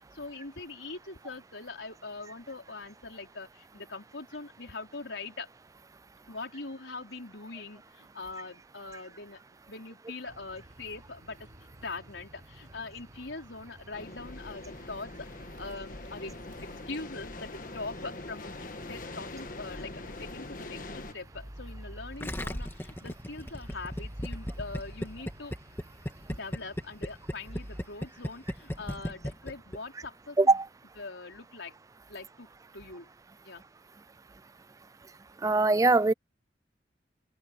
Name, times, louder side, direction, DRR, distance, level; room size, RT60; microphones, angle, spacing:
voice 1, 0.0-5.5 6.3-9.4 9.7-11.5 11.8-16.6 16.9-18.5 18.9-19.9 20.2-25.5 26.3-30.6 31.0-31.7 32.1-32.5 32.7-33.1 33.4-33.6, left 3 dB, 80° left, 4.6 m, -42 dB
sound 1, 10.3-27.8, equal, 45° right, 6.3 m, -50 dB
sound 2, 13.9-21.1, left 2 dB, 45° left, 1.4 m, -43 dB
Gurgling, 22.2-29.8 30.0-30.1, equal, 10° left, 1.6 m, -36 dB
voice 2, 35.4-36.1, right 3 dB, 20° right, 0.3 m, -21 dB
open air
head